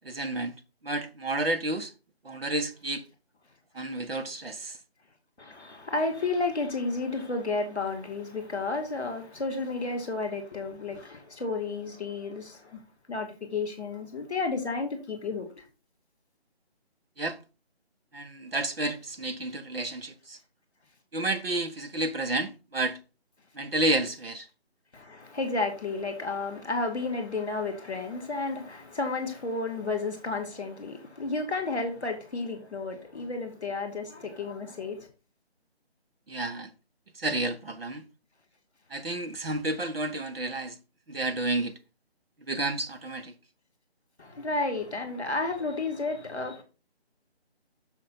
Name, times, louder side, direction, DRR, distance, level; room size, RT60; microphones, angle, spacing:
voice 1, 0.0-0.5 0.8-1.9 2.2-3.0 3.7-4.8 17.2-17.4 18.1-20.4 21.1-23.0 23.5-24.5 36.3-36.7 37.2-38.0 38.9-40.8 41.1-41.7 42.5-43.3, right 2 dB, 60° right, 1.2 m, -30 dB
voice 2, 5.4-12.8 13.1-15.7 24.9-35.1 44.2-46.6, left 3 dB, 5° right, 1.0 m, -32 dB
6.4 x 6.3 x 4.3 m
figure-of-eight pair, 175°, 32 cm